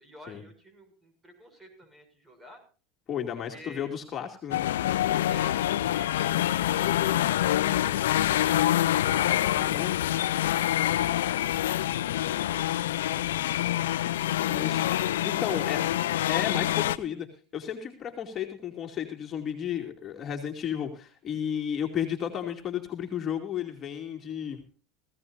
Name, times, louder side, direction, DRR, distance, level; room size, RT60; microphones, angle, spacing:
voice 1, 0.0-2.6 3.3-3.9 5.3-8.4 10.9-13.3 14.4-15.2 15.4-15.6 15.9-16.2, right 1 dB, 15° right, 7 dB, 6.6 m, -51 dB
voice 2, 3.1-4.6 9.6-9.9 14.5-14.9 15.2-15.8 16.3-17.3 17.5-24.6, left 9 dB, 35° left, 2 dB, 2.5 m, -33 dB
sound 1, 4.5-17.0, left 13 dB, 85° left, 0.5 m, -26 dB
18.5 x 16.0 x 2.6 m, 0.37 s
hypercardioid pair, 90°, 0 cm